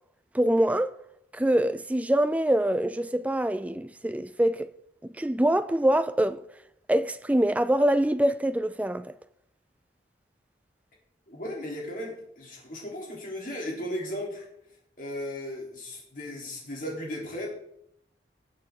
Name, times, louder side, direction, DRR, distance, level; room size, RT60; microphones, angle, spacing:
voice 1, 0.3-1.0 1.3-4.7 5.0-6.4 6.9-9.1, right 1 dB, 10° right, 0.4 m, -24 dB
voice 2, 11.3-14.5 15.0-17.5, left 1 dB, 50° left, 3.6 m, -36 dB
19.5 x 6.6 x 3.8 m
head